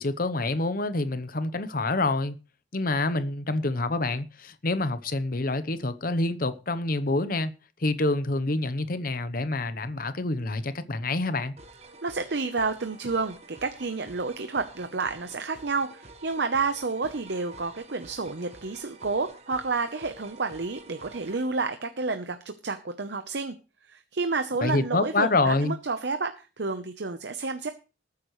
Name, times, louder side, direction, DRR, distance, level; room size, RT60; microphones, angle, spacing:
voice 1, 0.0-2.4 2.7-7.5 7.8-11.5 24.6-25.7, left 2 dB, 50° left, 0.9 m, -27 dB
sound 1, 11.6-21.5, right 2 dB, 35° right, 1.5 m, -49 dB
voice 2, 12.0-23.5 23.9-27.7, right 4 dB, 60° right, 0.8 m, -30 dB
19.5 x 9.6 x 3.2 m
head